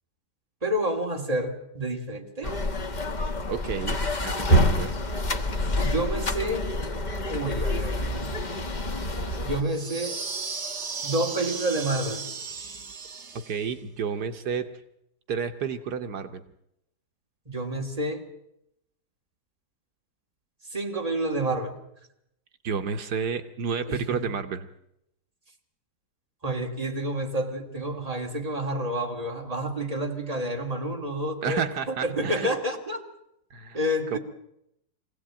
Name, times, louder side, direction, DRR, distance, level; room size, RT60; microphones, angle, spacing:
voice 1, 0.6-2.6 5.8-6.7 7.3-8.0 9.4-10.2 11.0-12.2 17.5-18.2 20.7-21.8 23.9-24.2 26.4-33.0 33.7-34.2, right 1 dB, 20° right, 2 dB, 2.7 m, -29 dB
sound 1, 2.4-9.6, equal, 30° left, 1.2 m, -27 dB
voice 2, 3.5-4.9 9.3-9.4 13.5-14.7 15.3-16.4 22.6-24.7 31.4-32.5 33.5-33.8 34.1-34.2, right 6 dB, 75° right, 7 dB, 1.6 m, -31 dB
sound 2, 9.6-13.7, right 4 dB, 45° right, 1.6 m, -35 dB
24.5 x 17.0 x 8.9 m, 0.81 s
omnidirectional pair, 1.7 m